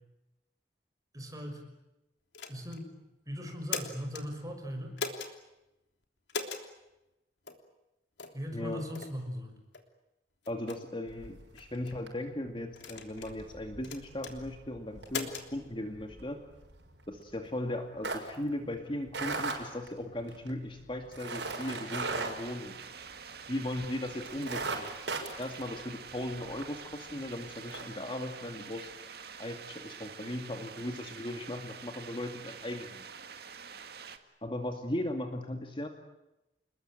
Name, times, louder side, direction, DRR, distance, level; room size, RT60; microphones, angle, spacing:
voice 1, 1.1-1.6 2.5-2.9 3.3-5.0 8.3-9.5, equal, 20° right, 4 dB, 6.1 m, -39 dB
sound 1, 2.3-2.8 3.5-4.2 5.0-5.3 6.3-6.7 7.5-7.6 8.2-8.4 8.9-9.1 9.7-9.9 10.4-10.8 11.6-12.0 12.8-13.4 13.8-14.3 15.1-15.5, left 5 dB, 80° left, 3.3 m, -38 dB
voice 2, 8.5-8.9 10.5-16.4 17.1-22.8 23.5-24.9 25.4-28.9 29.4-33.0 34.4-35.9, left 1 dB, 30° left, 5 dB, 2.3 m, -37 dB
sound 2, 11.1-11.7 12.0-12.3 12.7-23.4 23.8-23.9 24.2-26.7 27.1-27.2 27.6-27.8, right 3 dB, 85° right, 6.2 m, -39 dB
sound 3, 21.3-34.2, right 6 dB, 60° right, 2.1 m, -47 dB
29.5 x 21.0 x 9.0 m, 0.93 s
head